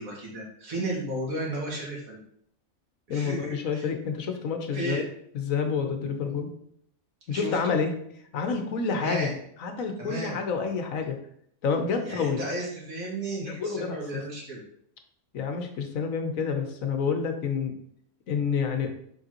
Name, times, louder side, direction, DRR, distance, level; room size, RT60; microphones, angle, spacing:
voice 1, 0.0-2.2 3.1-3.9 4.7-5.0 7.3-7.8 8.9-9.4 10.0-10.4 12.1-14.6, right 1 dB, 80° right, -3 dB, 2.3 m, -34 dB
voice 2, 3.1-5.0 5.3-6.5 7.3-7.9 8.3-9.3 9.6-11.2 11.6-12.4 13.4-14.2 15.3-17.7 18.3-18.9, left 5 dB, 75° left, 5 dB, 1.3 m, -28 dB
6.6 x 5.3 x 2.9 m, 0.68 s
omnidirectional pair, 1.4 m